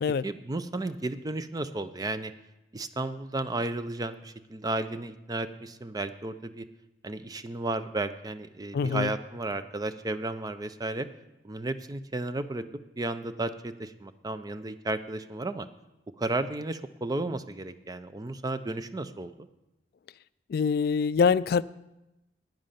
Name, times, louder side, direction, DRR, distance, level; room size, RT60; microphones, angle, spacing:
voice 1, 0.2-2.3 2.7-6.7 7.0-11.1 11.4-12.7 13.0-15.7 16.2-19.5, right 2 dB, 20° right, 0.5 m, -33 dB
voice 2, 8.7-9.1 20.5-21.6, left 5 dB, 60° left, 0.3 m, -24 dB
10.5 x 9.3 x 5.7 m
head